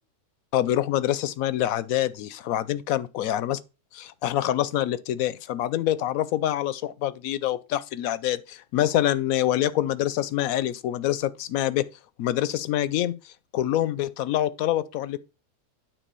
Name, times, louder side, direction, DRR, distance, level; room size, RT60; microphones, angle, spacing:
voice 1, 0.5-3.6 3.9-11.9 12.2-15.2, left 12 dB, 75° left, 1.0 m, -26 dB
9.2 x 4.2 x 6.8 m
omnidirectional pair, 1.5 m